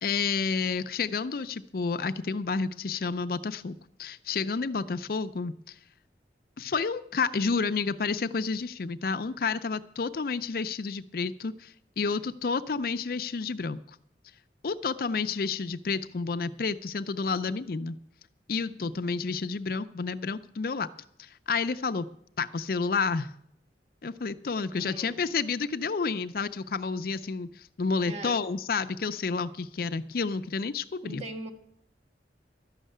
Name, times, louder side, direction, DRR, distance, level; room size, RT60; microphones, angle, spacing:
voice 1, 0.0-5.7 6.6-13.8 14.6-18.0 18.5-20.9 21.2-22.1 22.4-23.3 24.0-31.2, left 4 dB, 55° left, 11 dB, 0.5 m, -30 dB
voice 2, 24.7-25.2 28.0-28.4 31.0-31.5, right 1 dB, 35° right, 3 dB, 1.4 m, -41 dB
12.0 x 6.5 x 9.1 m, 0.71 s
head